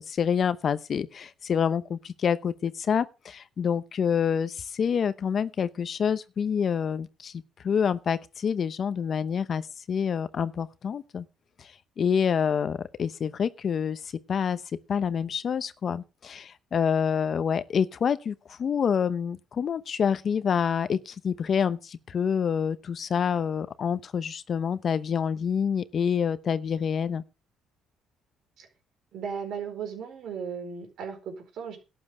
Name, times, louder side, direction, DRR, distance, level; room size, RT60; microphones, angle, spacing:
voice 1, 0.0-7.3 7.6-11.2 11.6-11.7 12.0-14.0 14.3-14.6 14.9-27.2, left 7 dB, 40° left, 0.8 m, -27 dB
voice 2, 29.1-31.8, right 6 dB, 60° right, 4.5 m, -36 dB
12.0 x 7.8 x 6.2 m
cardioid pair, 125°, 0 cm